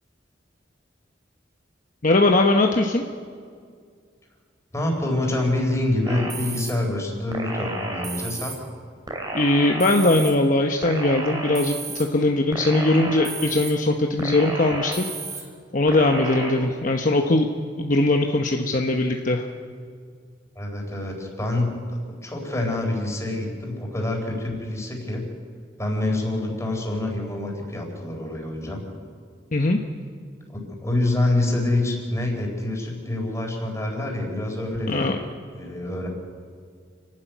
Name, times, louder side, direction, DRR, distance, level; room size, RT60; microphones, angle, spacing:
voice 1, 2.0-3.0 9.3-15.1 15.7-17.5 17.8-19.4 29.5-29.8 34.9-35.2, left 2 dB, 45° left, 3 dB, 1.0 m, -20 dB
voice 2, 4.7-8.6 20.6-25.3 25.8-28.8 30.5-35.1 35.6-36.1, left 1 dB, 15° left, 1 dB, 4.1 m, -26 dB
sound 1, 6.1-6.7 7.3-8.5 9.1-10.3 10.8-12.0 12.5-13.7 14.2-15.4 15.9-16.5, right 2 dB, 25° right, 2.8 m, -32 dB
29.0 x 12.0 x 9.2 m, 2.1 s
head